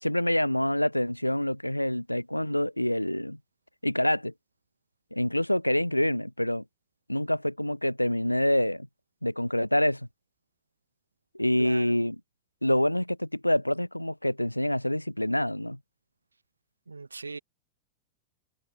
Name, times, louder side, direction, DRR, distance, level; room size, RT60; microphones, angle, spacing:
voice 1, 0.0-3.4 3.8-4.3 5.1-6.6 7.1-8.9 9.2-10.1 11.3-12.2 12.6-15.8, left 1 dB, 90° left, 0.4 m, -26 dB
voice 2, 11.6-12.0 16.9-17.4, right 4 dB, 80° right, 1.2 m, -39 dB
figure-of-eight pair, 90°, 0 cm